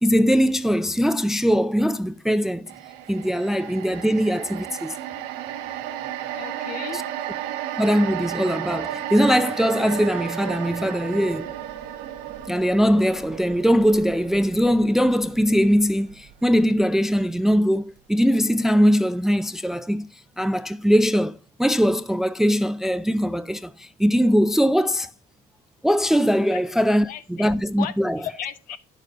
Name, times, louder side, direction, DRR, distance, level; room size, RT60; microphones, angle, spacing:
voice 1, 0.0-2.7 3.1-4.9 6.9-7.0 7.8-11.5 12.5-20.1 20.4-25.1 25.8-28.2, equal, 5° right, 0.4 m, -21 dB
sound 1, 2.7-17.0 17.4-17.5, right 11 dB, 75° right, 1.1 m, -34 dB
voice 2, 6.3-7.0 26.5-26.6 27.1-27.5 27.8-27.9 28.2-28.8, left 10 dB, 60° left, 1.1 m, -34 dB
9.9 x 6.6 x 3.7 m
cardioid pair, 110°, 16 cm